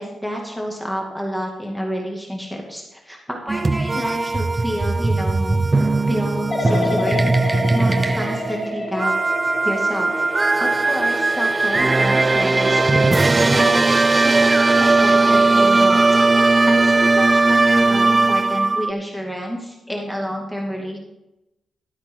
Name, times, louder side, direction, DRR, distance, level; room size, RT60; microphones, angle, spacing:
voice 1, 0.0-5.6 6.1-9.1 9.6-10.1 10.6-13.9 14.1-21.0, equal, ahead, -1 dB, 2.2 m, -29 dB
sound 1, 3.5-18.9, right 3 dB, 25° right, 0.4 m, -18 dB
sound 2, 6.5-13.4 13.9-14.3, left 2 dB, 35° left, 1.6 m, -30 dB
13.0 x 9.5 x 3.8 m, 0.92 s
wide cardioid pair, 110°, 0 cm